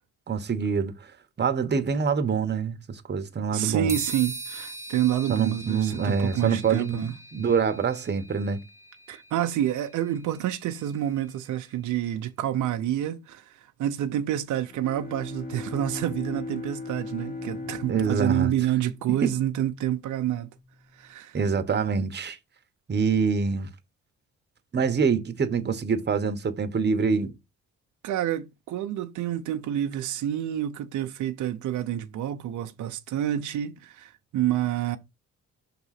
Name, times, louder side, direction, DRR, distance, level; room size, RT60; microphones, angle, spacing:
voice 1, 0.3-0.9 1.4-3.9 5.3-8.6 17.9-18.5 19.2-19.3 21.3-22.4 22.9-23.7 24.7-27.4, right 5 dB, 35° right, 1.1 m, -25 dB
voice 2, 3.5-7.1 9.1-20.5 20.9-21.4 28.0-35.0, right 11 dB, 80° right, 0.8 m, -28 dB
sound 1, 3.9-11.6, right 2 dB, 10° right, 1.0 m, -41 dB
Bowed string instrument, 14.6-20.1, left 3 dB, 30° left, 2.2 m, -38 dB
5.9 x 3.6 x 5.8 m
cardioid pair, 90°, 30 cm